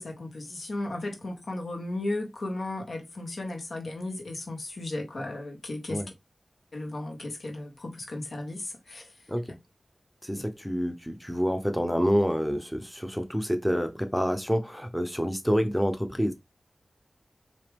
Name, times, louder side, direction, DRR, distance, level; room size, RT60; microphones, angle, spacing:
voice 1, 0.0-6.0 6.7-9.1, left 2 dB, 75° left, 1.5 m, -35 dB
voice 2, 10.2-16.3, equal, 5° left, 0.9 m, -27 dB
4.6 x 3.0 x 3.5 m
cardioid pair, 45°, 0 cm